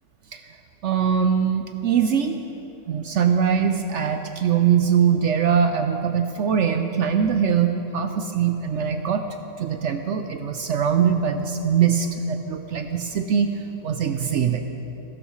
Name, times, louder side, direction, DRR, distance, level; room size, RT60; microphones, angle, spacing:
voice 1, 0.8-2.4 2.9-9.2 9.6-13.5 13.8-14.6, right 7 dB, 70° right, 6 dB, 0.7 m, -22 dB
15.5 x 13.0 x 3.1 m, 2.9 s
omnidirectional pair, 1.7 m